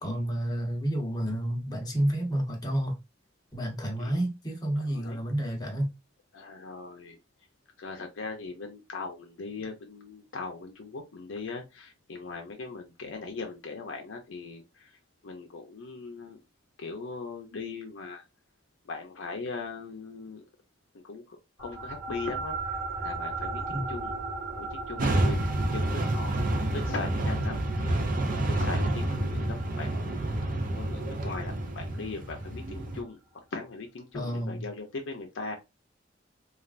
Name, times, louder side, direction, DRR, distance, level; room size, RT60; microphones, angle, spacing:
voice 1, 0.0-3.0 3.5-5.9 23.7-23.9 34.1-34.6, right 1 dB, 20° left, 0.8 m, -30 dB
voice 2, 4.9-5.2 6.3-7.2 7.8-14.9 15.2-16.4 16.8-18.2 18.9-20.4 20.9-24.1 24.5-33.2 33.5-35.6, left 4 dB, 80° left, 0.5 m, -40 dB
sound 1, 21.6-32.4, right 3 dB, 80° right, 1.1 m, -38 dB
sound 2, 25.0-33.0, right 1 dB, 45° right, 0.5 m, -29 dB
3.2 x 2.3 x 2.4 m
head